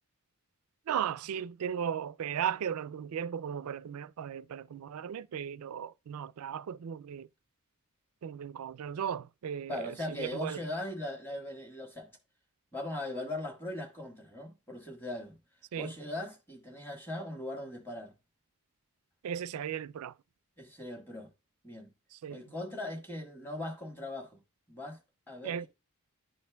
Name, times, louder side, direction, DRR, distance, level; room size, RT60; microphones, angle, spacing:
voice 1, 0.9-7.3 8.2-10.6 15.7-15.9 19.2-20.2 22.1-22.4 25.4-25.7, right 8 dB, 80° right, 0.3 m, -36 dB
voice 2, 9.7-12.1 12.7-15.4 15.8-18.1 20.6-21.3 21.6-21.9 22.3-24.4 24.7-25.0 25.3-25.7, left 1 dB, 10° left, 1.5 m, -39 dB
11.0 x 4.3 x 2.2 m
head